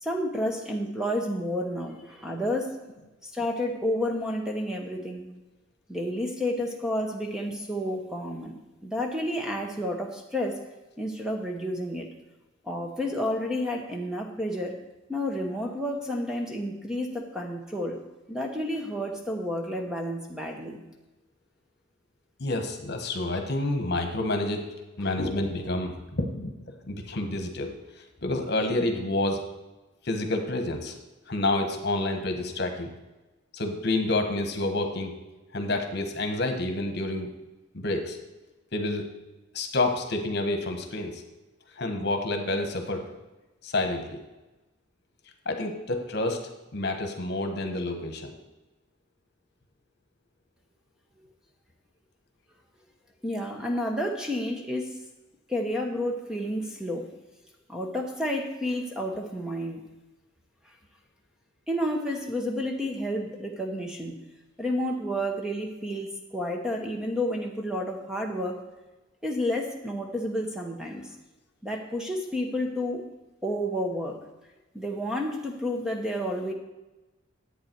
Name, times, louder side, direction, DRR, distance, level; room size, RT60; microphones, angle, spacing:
voice 1, 0.0-2.7 3.2-5.3 5.9-8.5 8.8-10.6 11.0-12.1 12.6-14.7 15.1-18.0 18.3-20.8 53.2-54.9 55.5-57.1 57.7-59.8 61.7-64.2 64.6-68.6 69.2-71.1 71.6-73.0 73.4-74.2 74.7-76.5, equal, 5° right, 1 dB, 1.0 m, -30 dB
voice 2, 22.4-24.6 25.0-26.5 26.8-27.7 28.2-29.4 30.0-30.9 31.3-32.9 33.5-35.1 35.5-37.3 37.7-38.2 38.7-39.0 39.5-41.2 41.8-43.1 43.6-44.2 45.4-46.4 46.7-48.3, left 2 dB, 55° left, 5 dB, 1.3 m, -28 dB
11.0 x 8.4 x 4.6 m, 1.1 s
head